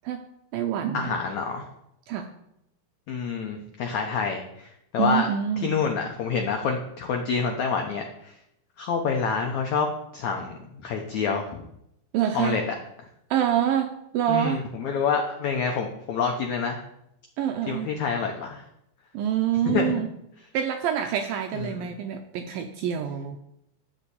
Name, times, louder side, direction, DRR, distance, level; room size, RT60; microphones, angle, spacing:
voice 1, 0.0-1.2 2.1-2.3 5.0-5.8 12.1-12.7 13.3-14.7 17.4-18.0 19.1-20.1 20.5-23.4, right 9 dB, 80° right, 5 dB, 2.1 m, -26 dB
voice 2, 0.9-1.7 3.1-5.3 5.6-8.4 8.8-11.6 12.3-12.7 14.3-16.8 17.7-18.6 19.7-19.9 21.5-21.9, left 5 dB, 80° left, 3 dB, 1.6 m, -27 dB
12.5 x 4.5 x 8.5 m, 0.79 s
omnidirectional pair, 4.8 m